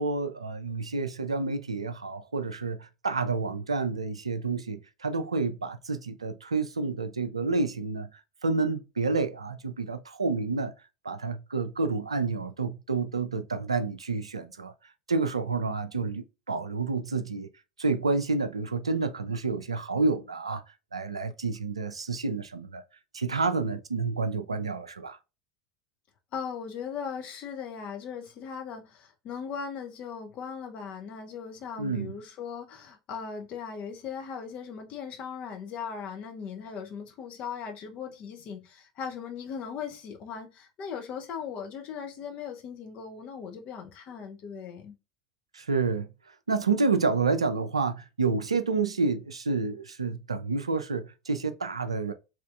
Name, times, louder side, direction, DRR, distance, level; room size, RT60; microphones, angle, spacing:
voice 1, 0.0-8.1 8.4-10.7 11.0-14.7 15.1-17.5 17.8-20.6 20.9-22.8 23.1-25.2 31.8-32.1 45.5-46.1 46.5-52.1, right 4 dB, 80° right, 0.4 m, -29 dB
voice 2, 26.3-45.0, left 6 dB, 40° left, 0.8 m, -38 dB
3.3 x 3.0 x 2.4 m
figure-of-eight pair, 75°, 3 cm